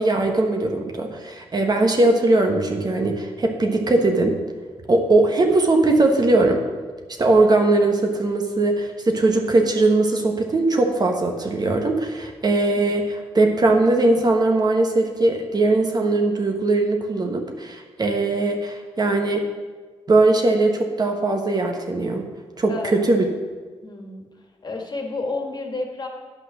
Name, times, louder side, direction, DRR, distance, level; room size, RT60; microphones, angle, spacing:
voice 1, 0.0-4.4 4.9-6.6 7.2-19.4 20.1-22.2 22.6-23.3, right 2 dB, 40° right, 3 dB, 1.3 m, -20 dB
voice 2, 22.7-23.3 23.8-24.3 24.6-26.1, left 2 dB, 40° left, 2 dB, 1.8 m, -30 dB
10.0 x 5.6 x 6.3 m, 1.4 s
cardioid pair, 85°, 11 cm